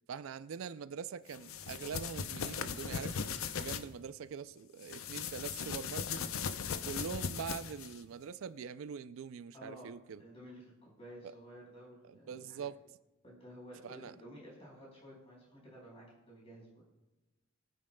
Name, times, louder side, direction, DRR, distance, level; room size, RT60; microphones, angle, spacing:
voice 1, 0.1-3.2 3.5-6.2 6.8-10.2 11.2-11.3 12.1-12.8 13.8-14.1, right 6 dB, 75° right, 0.4 m, -43 dB
sound 1, 1.3-3.8 4.8-8.0, left 6 dB, 85° left, 0.6 m, -38 dB
voice 2, 9.5-12.6 13.2-16.8, equal, 30° left, 4.5 m, -53 dB
20.0 x 9.3 x 2.2 m
head